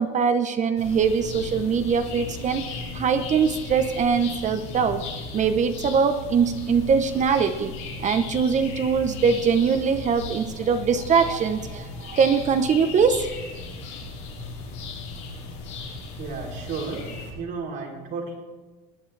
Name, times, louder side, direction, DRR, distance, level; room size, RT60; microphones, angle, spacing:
voice 1, 0.0-5.0 5.3-7.7 8.0-13.3, right 6 dB, 35° right, 9 dB, 0.8 m, -22 dB
sound 1, 0.8-17.3, left 3 dB, 75° left, 4.6 m, -36 dB
voice 2, 16.2-17.0 17.4-18.4, right 4 dB, 60° right, -3 dB, 3.2 m, -33 dB
20.5 x 9.4 x 3.3 m, 1.2 s
supercardioid pair, 105°, 21 cm